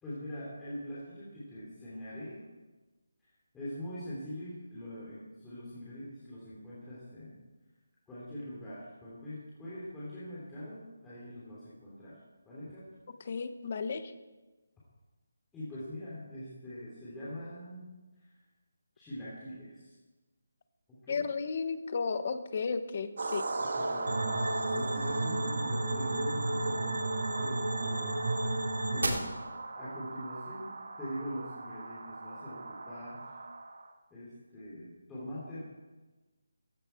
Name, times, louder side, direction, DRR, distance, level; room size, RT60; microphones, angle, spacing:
voice 1, 0.0-2.4 3.5-7.4 8.1-12.2 12.4-12.8 15.5-17.9 18.2-18.3 18.9-19.9 20.9-21.2 23.6-24.1 24.4-28.1 28.4-28.5 28.9-29.3 29.7-30.7 31.0-33.4 34.1-35.6, equal, 5° left, -10 dB, 3.3 m, -43 dB
voice 2, 13.2-14.1 21.1-23.5, left 5 dB, 35° left, 10 dB, 1.1 m, -33 dB
sound 1, 23.2-33.9, right 3 dB, 60° right, 2.1 m, -39 dB
sound 2, 24.1-29.1, right 2 dB, 85° right, 3.5 m, -32 dB
17.0 x 15.0 x 4.6 m, 1.2 s
figure-of-eight pair, 170°, 0 cm